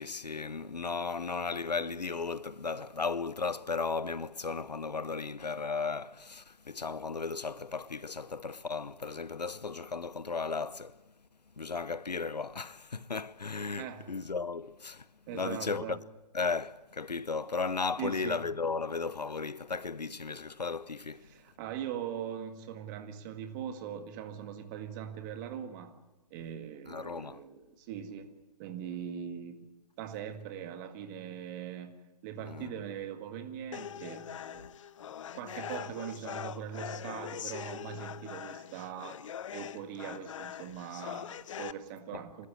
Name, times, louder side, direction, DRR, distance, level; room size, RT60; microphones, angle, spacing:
voice 1, 0.0-11.0 11.6-15.1 15.3-16.0 16.3-21.3 26.9-27.4 32.4-32.8 42.1-42.5, left 4 dB, 90° left, 0.8 m, -35 dB
voice 2, 13.8-14.1 15.3-16.0 18.0-18.4 21.2-25.9 26.3-28.3 28.6-29.7 30.0-31.9 32.2-34.7 35.3-39.2 39.5-42.5, right 9 dB, 30° right, 1.9 m, -41 dB
sound 1, 33.7-41.7, left 9 dB, 50° left, 0.8 m, -42 dB
28.5 x 13.0 x 9.7 m
figure-of-eight pair, 135°, 21 cm